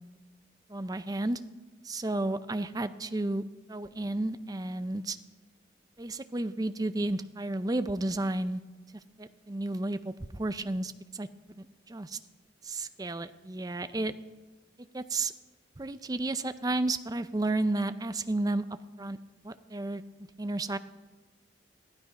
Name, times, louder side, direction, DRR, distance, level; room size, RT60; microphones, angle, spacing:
voice 1, 0.7-1.4 1.8-3.4 3.7-5.2 6.0-8.6 9.2-11.3 11.6-12.2 12.6-14.1 14.9-15.3 15.8-18.6 19.0-19.2 19.4-20.0 20.4-20.8, right 2 dB, 20° right, 12 dB, 0.5 m, -32 dB
15.0 x 12.5 x 5.4 m, 1.2 s
head